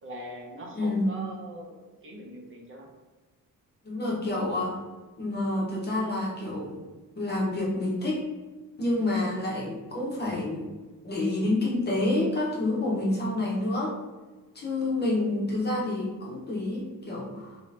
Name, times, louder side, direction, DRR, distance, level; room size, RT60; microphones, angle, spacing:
voice 1, 0.0-1.8 2.0-2.9, right 1 dB, 40° right, -2 dB, 0.6 m, -41 dB
voice 2, 0.7-1.1 3.8-4.8 5.2-6.8 7.2-8.2 8.8-10.7 11.0-14.0 14.5-17.6, left 2 dB, 30° left, -4 dB, 0.8 m, -28 dB
3.1 x 2.7 x 3.2 m, 1.3 s
wide cardioid pair, 160°, 34 cm